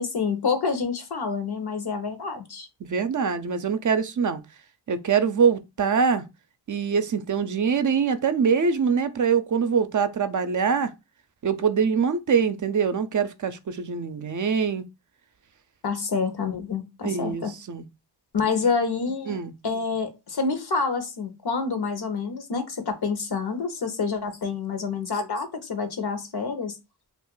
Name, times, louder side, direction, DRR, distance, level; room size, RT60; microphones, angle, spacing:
voice 1, 0.0-2.7 15.8-17.5 18.3-26.8, left 5 dB, 65° left, 0.9 m, -28 dB
voice 2, 2.8-4.4 4.9-6.2 6.7-10.9 11.4-14.8 17.0-17.8 19.3-19.5, right 6 dB, 45° right, 0.5 m, -24 dB
2.5 x 2.5 x 3.7 m
cardioid pair, 40°, 41 cm